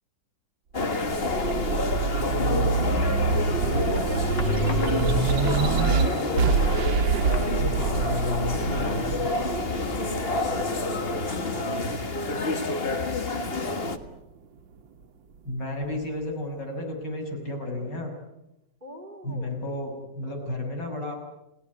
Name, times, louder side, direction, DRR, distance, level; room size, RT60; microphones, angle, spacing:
sound 1, 0.7-14.0, left 2 dB, 35° left, 1.7 m, -28 dB
sound 2, 0.8-11.6 12.1-13.2, right 4 dB, 90° right, 1.8 m, -26 dB
voice 1, 1.5-1.9 3.6-5.2 9.7-13.2 18.8-19.7, equal, 25° right, 5 dB, 3.4 m, -42 dB
voice 2, 2.4-2.7 5.3-6.6 7.6-9.4 15.5-18.1 19.2-21.1, left 2 dB, 70° left, 2 dB, 6.9 m, -32 dB
sound 3, 4.3-5.4 6.4-6.5 6.8-6.9 7.3-8.3 8.6-8.7 11.0-11.7 12.3-12.4, left 3 dB, 90° left, 3.1 m, -42 dB
29.5 x 18.5 x 9.6 m, 0.91 s
omnidirectional pair, 1.9 m